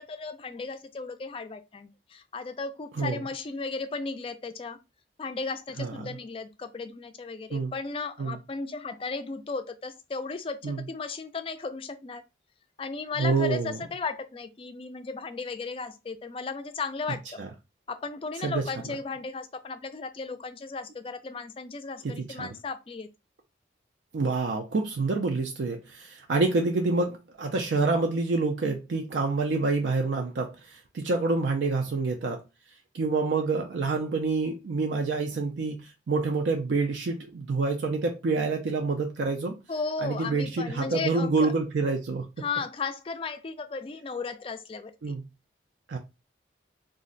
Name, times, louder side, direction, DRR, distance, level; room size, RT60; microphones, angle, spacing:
voice 1, 0.0-4.8 5.2-12.2 12.8-17.4 17.9-23.1 39.7-41.5 42.4-45.1, left 4 dB, 30° left, 0.3 m, -35 dB
voice 2, 13.2-13.7 17.4-17.5 18.4-18.6 22.1-22.5 24.1-32.4 32.9-39.6 40.0-42.3 45.0-45.2 45.9-46.0, right 3 dB, 75° right, 0.4 m, -27 dB
2.5 x 2.1 x 3.8 m
head